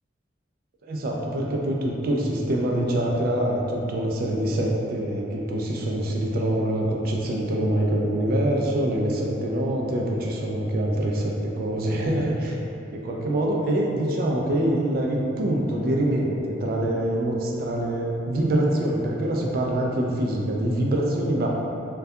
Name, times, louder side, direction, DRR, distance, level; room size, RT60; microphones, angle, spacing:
voice 1, 0.8-12.6 12.9-21.5, right 1 dB, 50° right, -1 dB, 0.3 m, -25 dB
2.6 x 2.2 x 2.2 m, 2.6 s
head